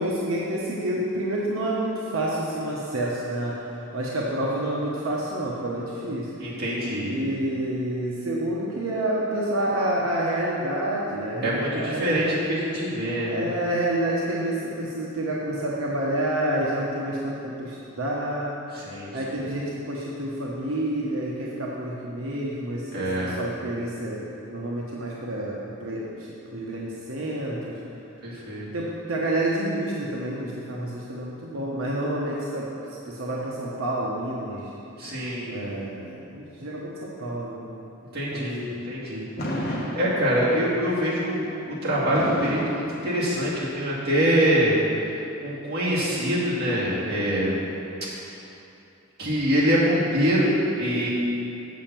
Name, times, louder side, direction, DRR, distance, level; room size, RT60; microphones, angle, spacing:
voice 1, 0.0-6.3 7.0-12.2 13.2-18.5 19.1-24.2 24.5-27.8 28.7-32.7 33.0-34.7 35.5-37.8 38.3-38.8, right 1 dB, 90° right, -4 dB, 1.1 m, -29 dB
voice 2, 6.4-7.2 11.4-13.5 18.7-19.4 22.9-23.4 28.2-28.7 35.0-35.6 38.1-39.3 39.6-44.8 45.4-47.6 48.2-48.4 49.2-51.1, equal, 50° right, -8 dB, 2.4 m, -25 dB
Fireworks, 39.4-40.7 42.1-43.7, equal, 50° left, 1.3 m, -31 dB
7.3 x 5.7 x 7.4 m, 2.8 s
head